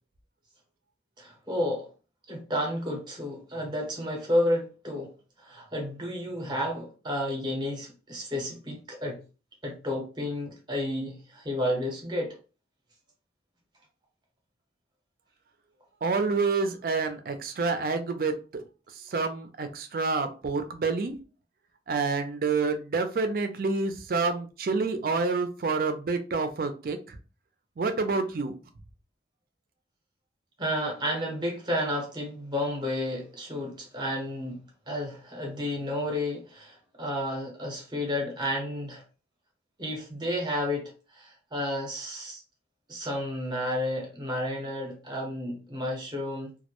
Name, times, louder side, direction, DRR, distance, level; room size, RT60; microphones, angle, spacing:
voice 1, 1.2-1.9 2.3-5.1 5.4-9.2 9.6-12.3 30.6-34.6 34.9-39.0 39.8-42.4 42.9-46.5, left 1 dB, 25° right, 0 dB, 0.7 m, -31 dB
voice 2, 16.0-18.6 19.1-21.1 21.9-27.2 27.8-28.5, right 4 dB, 50° right, 8 dB, 0.4 m, -28 dB
2.2 x 2.0 x 2.9 m, 0.34 s
head